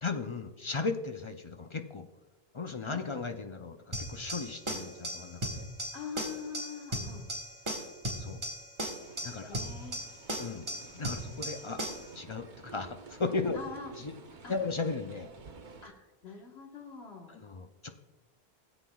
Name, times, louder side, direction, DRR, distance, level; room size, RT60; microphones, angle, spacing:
voice 1, 0.0-2.1 2.5-5.6 8.2-8.4 9.2-9.6 10.4-11.8 12.1-13.6 14.0-14.1 14.5-15.3 17.3-17.9, left 4 dB, 40° left, 6 dB, 0.5 m, -36 dB
sound 1, 3.9-12.1, equal, 30° right, 1.4 m, -37 dB
voice 2, 5.9-7.3 9.5-10.0 13.5-13.9 14.4-14.5 15.8-17.4, left 5 dB, 80° left, 1 dB, 1.6 m, -43 dB
sound 2, 9.0-15.9, right 4 dB, 50° right, 1.0 m, -52 dB
17.0 x 8.0 x 2.3 m, 1.2 s
omnidirectional pair, 1.1 m